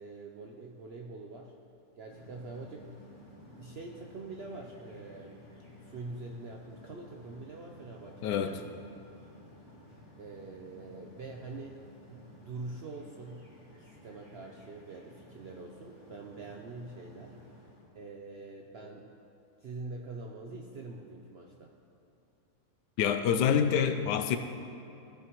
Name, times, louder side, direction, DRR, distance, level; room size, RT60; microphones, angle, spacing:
voice 1, 0.0-1.5 2.0-2.9 3.5-5.4 5.8-8.7 10.2-11.8 12.1-13.5 13.8-17.4 17.9-19.1 19.6-21.7, right 3 dB, 65° right, 1 dB, 0.6 m, -44 dB
sound 1, 2.1-17.9, left 1 dB, 45° left, 2.4 m, -54 dB
voice 2, 8.2-8.6 23.0-24.4, left 8 dB, 85° left, 8 dB, 1.2 m, -26 dB
14.5 x 7.3 x 3.0 m, 2.9 s
omnidirectional pair, 1.8 m